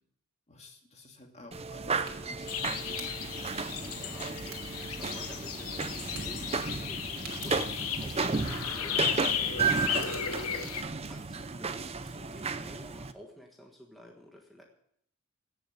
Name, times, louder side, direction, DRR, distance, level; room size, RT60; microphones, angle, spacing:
voice 1, 0.5-2.9, left 2 dB, 30° left, 2 dB, 2.3 m, -52 dB
sound 1, 1.5-13.1, right 4 dB, 25° right, 0.7 m, -34 dB
Fire, 1.9-13.0, right 6 dB, 65° right, 3.0 m, -53 dB
sound 2, 2.5-10.8, left 8 dB, 75° left, 1.1 m, -35 dB
voice 2, 3.8-10.8 11.1-14.6, left 1 dB, ahead, -1 dB, 1.5 m, -51 dB
17.0 x 7.1 x 7.6 m, 0.71 s
head